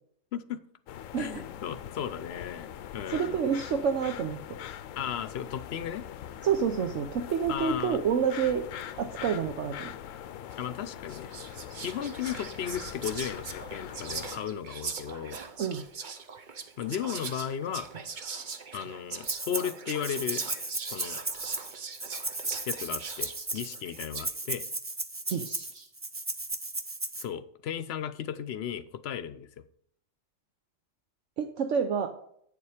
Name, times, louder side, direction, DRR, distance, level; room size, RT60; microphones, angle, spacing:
sound 1, 0.9-14.4, left 10 dB, 85° left, 1.0 m, -42 dB
voice 1, 1.2-3.4 5.0-6.0 7.5-8.0 10.6-11.3 11.8-15.4 16.8-17.9 18.7-20.4 20.9-21.2 22.7-24.6 27.2-29.5, left 9 dB, 60° left, 14 dB, 0.8 m, -35 dB
voice 2, 3.1-4.4 6.4-8.6 9.0-9.9 15.6-15.8 25.3-25.9 31.4-32.1, right 7 dB, 70° right, 6 dB, 1.1 m, -28 dB
Whispering, 10.5-10.7 11.1-24.4, right 5 dB, 45° right, 0.9 m, -41 dB
Rattle (instrument), 19.2-19.7 20.0-27.2, right 2 dB, 20° right, 0.3 m, -35 dB
8.8 x 7.2 x 4.9 m, 0.67 s
omnidirectional pair, 1.3 m